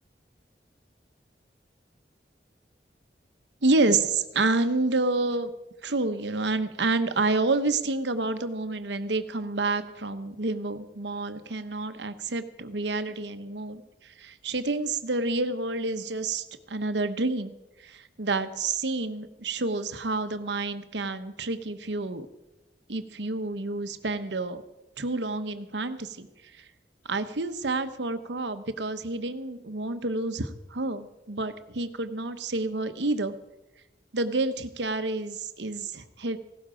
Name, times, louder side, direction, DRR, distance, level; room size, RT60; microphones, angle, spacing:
voice 1, 3.6-5.5 5.8-17.5 17.8-22.3 22.9-24.6 25.0-26.3 26.6-26.7 27.0-33.3 34.1-36.4, right 3 dB, 85° right, 10 dB, 1.0 m, -29 dB
16.5 x 12.5 x 5.1 m, 0.96 s
head